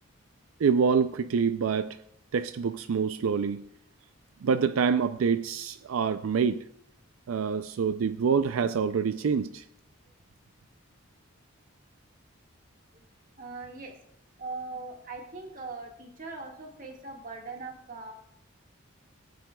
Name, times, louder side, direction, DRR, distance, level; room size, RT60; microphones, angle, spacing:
voice 1, 0.6-2.0 2.3-3.6 4.4-6.6 7.3-9.6, right 6 dB, 90° right, 0.4 m, -26 dB
voice 2, 13.4-13.9 14.4-18.1, right 3 dB, 40° right, 1.7 m, -40 dB
19.5 x 9.0 x 2.3 m
head